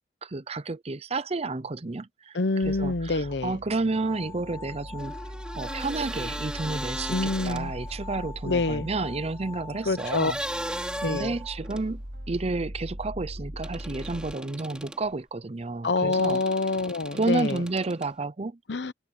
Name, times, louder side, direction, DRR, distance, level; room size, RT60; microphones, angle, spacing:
voice 1, 0.2-2.4 2.7-5.1 5.6-10.4 11.0-16.4 17.1-18.6, right 3 dB, 35° right, 0.6 m, -31 dB
voice 2, 2.3-3.6 7.1-7.7 8.4-8.9 9.9-10.3 11.0-11.3 15.8-17.6 18.7-18.9, left 3 dB, 65° left, 0.8 m, -26 dB
sound 1, 2.6-14.3, equal, 65° right, 5.9 m, -40 dB
sound 2, 3.9-11.6, left 4 dB, 15° left, 2.5 m, -43 dB
sound 3, 5.0-8.0 10.0-11.9 13.6-15.1 16.1-18.1, right 1 dB, 5° right, 5.3 m, -37 dB
head